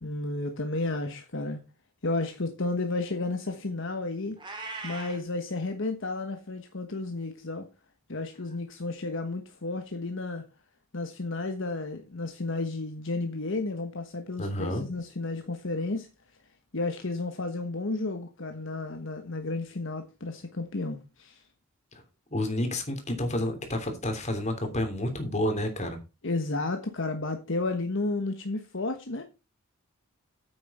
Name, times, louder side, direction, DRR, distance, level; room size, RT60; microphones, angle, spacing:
voice 1, 0.0-1.6 2.0-4.4 4.8-7.7 8.1-10.4 10.9-16.1 16.7-21.4 26.2-29.2, left 2 dB, 65° left, 1.3 m, -32 dB
Meow, 4.4-5.2, right 3 dB, 25° right, 3.1 m, -39 dB
voice 2, 14.4-14.8 21.9-22.0 22.3-26.0, left 1 dB, 35° left, 3.1 m, -30 dB
9.1 x 8.7 x 4.3 m
head